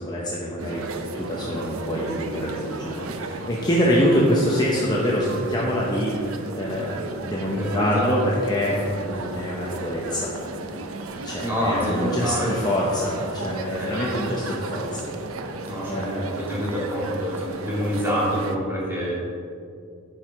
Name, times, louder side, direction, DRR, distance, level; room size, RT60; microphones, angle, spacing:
voice 1, 0.0-10.3 11.2-15.0 15.9-16.3, equal, 20° left, -5 dB, 0.8 m, -25 dB
sound 1, 0.6-18.6, right 3 dB, 85° right, 0.6 m, -34 dB
voice 2, 7.5-8.1 8.6-8.9 11.4-12.6 13.8-14.0 15.7-19.2, equal, 10° right, -7 dB, 2.2 m, -27 dB
11.0 x 4.8 x 4.7 m, 2.4 s
head